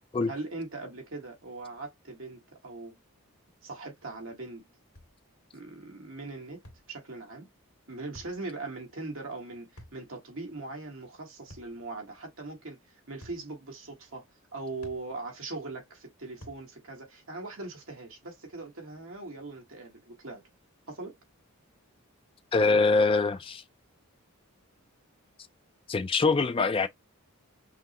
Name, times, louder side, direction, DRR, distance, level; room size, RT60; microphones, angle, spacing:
voice 1, 0.3-3.0 3.6-4.6 5.5-6.6 6.9-7.5 7.9-14.3 14.5-20.4 20.9-21.2, right 3 dB, 60° right, 1.4 m, -40 dB
sound 1, 5.0-5.2 6.6-6.9 8.1-8.4 9.8-10.0 11.5-11.8 13.2-13.5 14.8-15.1 16.4-16.7, equal, 85° left, 1.9 m, -49 dB
voice 2, 22.5-23.6 25.9-26.9, left 3 dB, 25° left, 0.3 m, -24 dB
5.7 x 2.0 x 2.9 m
head